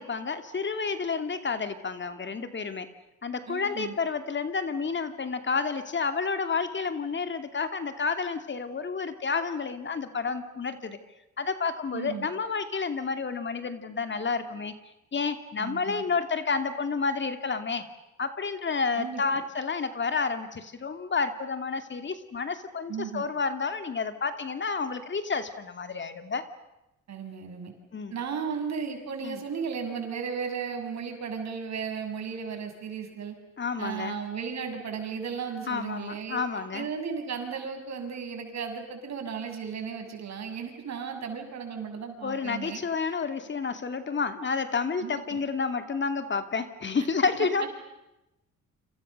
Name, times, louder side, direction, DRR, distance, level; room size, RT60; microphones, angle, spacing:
voice 1, 0.0-2.9 3.2-11.0 11.4-14.8 15.1-17.9 18.2-26.4 27.9-28.2 29.2-29.4 33.6-34.2 35.7-36.9 42.2-47.6, left 5 dB, 40° left, 9 dB, 2.6 m, -30 dB
voice 2, 3.5-3.9 11.9-12.3 15.6-16.0 19.0-19.2 22.9-23.2 27.1-27.7 28.1-33.3 33.8-42.8 45.0-45.4 47.0-47.1 47.6-47.7, right 6 dB, 60° right, 5 dB, 6.9 m, -35 dB
30.0 x 27.0 x 6.7 m, 0.90 s
cardioid pair, 90°, 30 cm